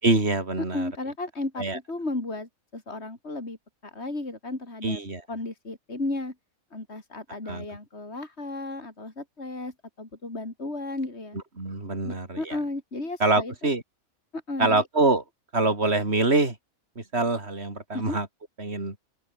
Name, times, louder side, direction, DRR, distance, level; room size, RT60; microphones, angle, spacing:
voice 1, 0.0-0.9 1.6-1.8 4.8-5.2 7.5-7.7 11.6-12.6 13.2-13.8 14.6-15.2 15.5-16.5 17.0-18.3 18.6-18.9, right 3 dB, 50° right, 4.4 m, -25 dB
voice 2, 0.7-3.6 3.8-5.0 5.3-6.3 6.7-11.4 12.0-13.7 14.3-14.8 17.9-18.2, left 2 dB, 50° left, 4.7 m, -34 dB
open air
omnidirectional pair, 1.5 m